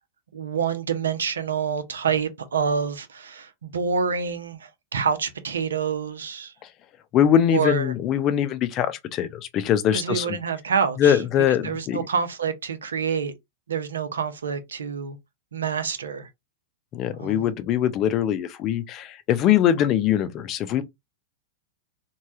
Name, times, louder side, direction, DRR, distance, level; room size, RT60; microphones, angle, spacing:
voice 1, 0.3-6.5 7.5-7.9 9.9-11.2 11.6-13.3 13.7-15.2 15.5-16.3 17.2-17.4, right 6 dB, 80° right, 0.6 m, -27 dB
voice 2, 7.1-10.4 11.0-12.1 16.9-20.8, left 10 dB, 40° left, 0.5 m, -22 dB
3.3 x 2.2 x 2.7 m
hypercardioid pair, 100°, 0 cm